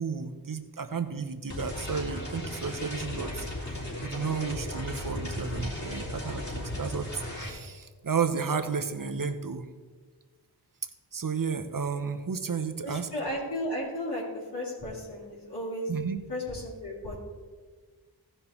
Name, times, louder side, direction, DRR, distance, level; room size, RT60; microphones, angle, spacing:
voice 1, 0.0-7.1 7.3-9.7 11.1-13.1 15.9-16.2, right 5 dB, 50° right, 8 dB, 0.9 m, -32 dB
sound 1, 1.5-7.5, left 1 dB, 40° left, 3.6 m, -36 dB
voice 2, 12.8-15.9 16.3-17.2, left 1 dB, 70° left, -9 dB, 3.3 m, -34 dB
14.5 x 5.6 x 4.5 m, 1.5 s
cardioid pair, 40°, 41 cm